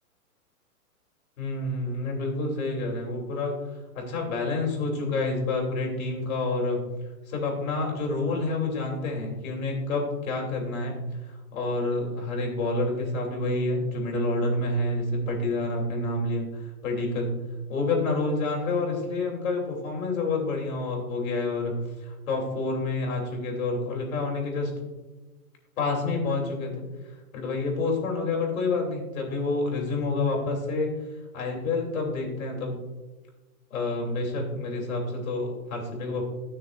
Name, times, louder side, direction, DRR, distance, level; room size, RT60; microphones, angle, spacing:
voice 1, 1.4-3.5 3.9-6.8 7.3-11.0 11.5-17.4 17.7-21.7 22.0-24.7 25.8-26.8 27.3-30.9 31.3-32.8 33.7-36.2, left 2 dB, 60° left, 0 dB, 3.0 m, -28 dB
14.0 x 6.3 x 2.5 m, 1.2 s
hypercardioid pair, 160°, 46 cm